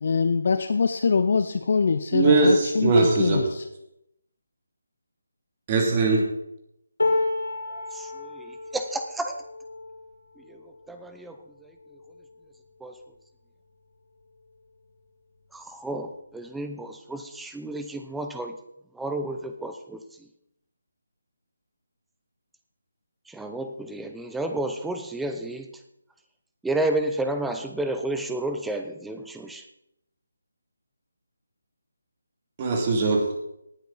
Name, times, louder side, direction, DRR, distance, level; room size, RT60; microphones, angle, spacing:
voice 1, 0.0-3.7, left 5 dB, 50° left, 9 dB, 0.7 m, -24 dB
voice 2, 2.1-3.4 5.7-6.2 32.6-33.2, right 3 dB, 25° right, 1 dB, 2.7 m, -20 dB
sound 1, 7.0-13.1 13.7-13.9 14.2-15.0 15.9-16.0, left 2 dB, 85° left, 2.8 m, -32 dB
voice 3, 7.7-9.4 10.5-11.7 12.8-12.9 15.5-18.5 18.9-20.0 23.3-25.7 26.6-29.6, right 2 dB, 5° right, 6 dB, 0.7 m, -31 dB
18.5 x 8.2 x 4.1 m, 0.80 s
figure-of-eight pair, 155°, 0 cm